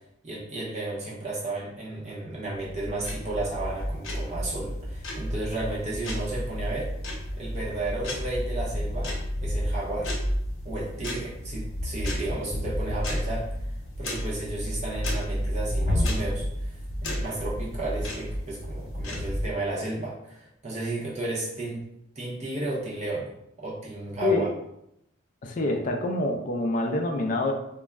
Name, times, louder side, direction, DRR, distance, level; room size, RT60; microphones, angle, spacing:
voice 1, 0.2-6.9 7.3-9.1 9.4-10.1 10.6-13.5 14.0-21.8 22.2-23.3 23.6-24.5, right 2 dB, 35° right, -5 dB, 0.6 m, -33 dB
sound 1, 2.5-19.5, equal, 90° left, 0.7 m, -31 dB
voice 2, 25.4-27.5, left 2 dB, 40° left, 3 dB, 0.3 m, -26 dB
2.2 x 2.0 x 3.4 m, 0.78 s
head